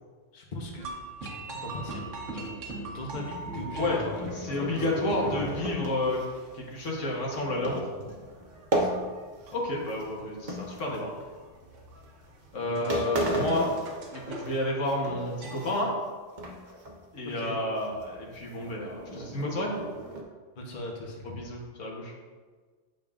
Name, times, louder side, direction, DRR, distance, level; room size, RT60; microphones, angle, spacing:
voice 1, 0.3-0.8 1.2-2.0 2.3-2.5 2.9-5.5 8.8-8.9 12.5-13.2 17.3-17.6 20.6-21.5, left 1 dB, 40° left, -1 dB, 1.0 m, -39 dB
sound 1, 0.8-15.8, right 2 dB, 80° right, 1.3 m, -42 dB
sound 2, 3.5-9.6 9.9-11.4 12.0-12.2 12.6-12.7 12.9-14.6 14.9-16.1 16.4-17.0 17.3-17.4 17.8-20.2, right 1 dB, 45° right, 0.9 m, -35 dB
voice 2, 4.4-6.2 6.5-7.9 9.5-11.1 12.5-13.7 14.1-15.9 17.1-19.8 21.4-22.1, left 1 dB, 85° left, -2 dB, 1.6 m, -30 dB
8.9 x 5.3 x 2.4 m, 1.4 s
omnidirectional pair, 1.3 m